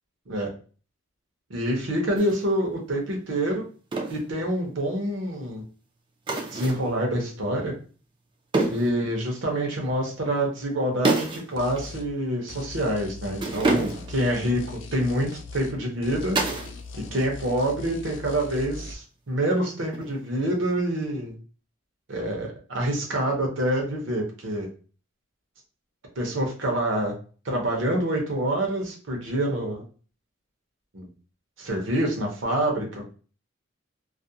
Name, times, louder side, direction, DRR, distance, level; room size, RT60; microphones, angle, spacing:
voice 1, 1.5-3.6 4.1-5.6 6.5-7.7 8.5-14.6 14.9-16.4 17.1-21.3 22.1-24.7 26.2-27.1 27.4-29.8 30.9-31.1 31.6-33.2, right 1 dB, 65° right, 1 dB, 0.8 m, -26 dB
sound 1, 2.2-2.4 3.9-4.2 6.3-6.9 8.5-9.0 11.0-11.5 11.8-11.9 13.4-14.2 16.3-16.8 17.1-17.6 19.9-20.4, right 3 dB, 25° right, 0.3 m, -27 dB
sound 2, 11.6-12.1 12.5-15.8 16.0-18.9, left 3 dB, 60° left, 0.3 m, -40 dB
2.4 x 2.1 x 2.7 m, 0.38 s
head